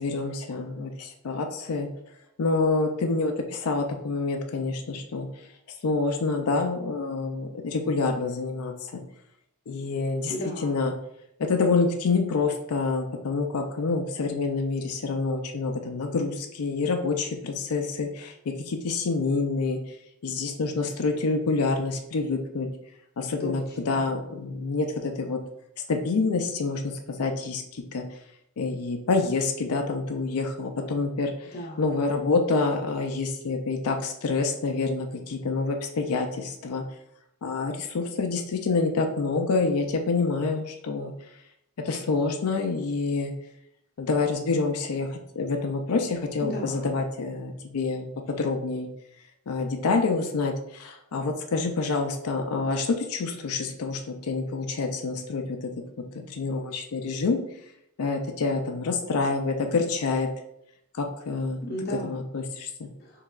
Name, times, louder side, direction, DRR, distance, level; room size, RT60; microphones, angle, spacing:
voice 1, 0.0-1.9 2.4-5.3 5.8-9.0 9.7-10.3 10.6-10.9 11.4-18.3 18.6-19.8 20.2-22.7 23.2-25.4 25.9-28.0 28.6-31.5 31.8-36.8 37.4-41.1 41.8-43.3 44.0-48.9 49.5-55.6 56.1-57.4 58.0-60.3 61.0-61.6 62.0-62.9, left 3 dB, 90° left, 4 dB, 0.5 m, -27 dB
voice 2, 10.3-10.8 23.4-23.9 31.5-32.0 46.4-46.9 61.6-62.2 63.0-63.2, equal, 45° left, -3 dB, 0.6 m, -35 dB
4.7 x 3.4 x 2.4 m, 0.77 s
head